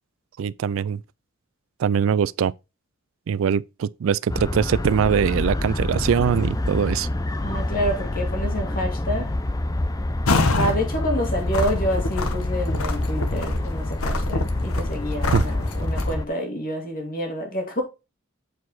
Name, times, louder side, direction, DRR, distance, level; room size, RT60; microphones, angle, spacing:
voice 1, 0.4-1.0 1.8-2.5 3.3-7.1 15.3-15.4, right 7 dB, 70° right, 0.3 m, -22 dB
sound 1, 4.3-16.3, left 1 dB, 15° left, 0.5 m, -27 dB
voice 2, 7.4-9.3 10.3-17.8, equal, 45° left, 2.5 m, -28 dB
sound 2, 10.3-10.8 11.2-16.1, left 2 dB, 90° left, 1.1 m, -26 dB
8.1 x 4.7 x 4.0 m
head